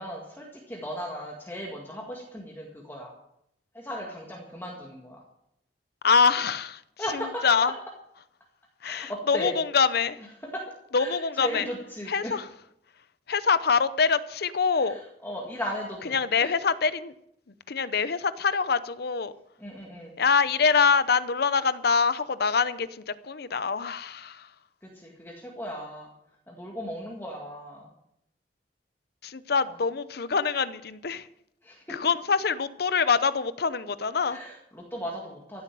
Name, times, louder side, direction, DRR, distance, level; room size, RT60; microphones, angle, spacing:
voice 1, 0.0-3.1 3.7-5.2 7.0-7.7 8.8-9.5 10.5-10.6 11.0-12.3 14.8-16.6 19.6-20.2 24.8-26.1 26.5-27.9 31.6-31.9 34.3-35.6, equal, 15° left, 2.0 m, -37 dB
voice 2, 6.0-6.8 7.1-7.7 8.8-10.2 10.9-11.7 12.1-12.5 13.3-15.0 16.1-17.1 17.7-19.3 20.2-24.5 29.2-31.3 31.9-34.4, left 5 dB, 65° left, 0.7 m, -25 dB
15.5 x 8.2 x 7.6 m
head